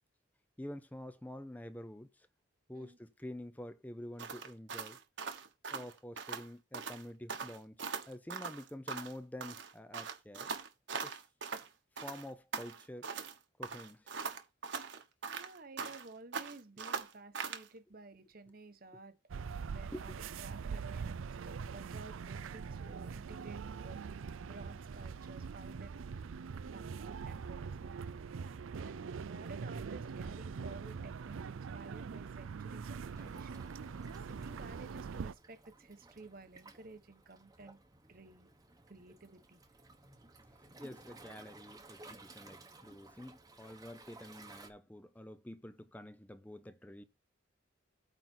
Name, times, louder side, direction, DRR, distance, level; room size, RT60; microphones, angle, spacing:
voice 1, 0.6-2.3 2.7-5.0 5.7-10.6 11.0-11.2 12.0-13.1 13.6-14.1 19.9-20.2 40.8-47.0, left 1 dB, 10° left, 0.6 m, -48 dB
sound 1, 4.2-6.5 6.7-7.0 7.3-9.2 9.4-11.7 12.0-13.3 13.6-16.1 16.3-17.7, right 5 dB, 65° right, 1.3 m, -41 dB
voice 2, 15.2-19.2 19.7-26.1 26.7-37.8 38.1-38.5 38.9-39.6, right 3 dB, 45° right, 1.0 m, -54 dB
sound 2, 19.3-35.3, right 5 dB, 80° right, 0.4 m, -43 dB
Waves surf, 32.8-44.7, right 2 dB, 20° right, 1.0 m, -57 dB
9.0 x 4.1 x 5.9 m
head